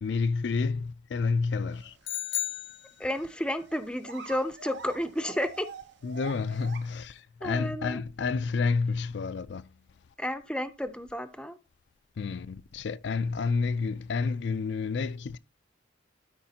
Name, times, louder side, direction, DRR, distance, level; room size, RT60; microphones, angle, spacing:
voice 1, 0.0-1.9 6.0-9.6 12.2-15.4, left 4 dB, 65° left, 0.4 m, -29 dB
sound 1, 1.7-2.1 2.4-2.5 3.1-3.3 3.6-7.0, right 5 dB, 65° right, 0.8 m, -45 dB
sound 2, 2.0-3.5, left 14 dB, 80° left, 0.9 m, -34 dB
voice 2, 3.0-5.7 7.4-8.0 10.2-11.6, left 1 dB, 5° left, 0.5 m, -32 dB
13.0 x 4.7 x 2.8 m
head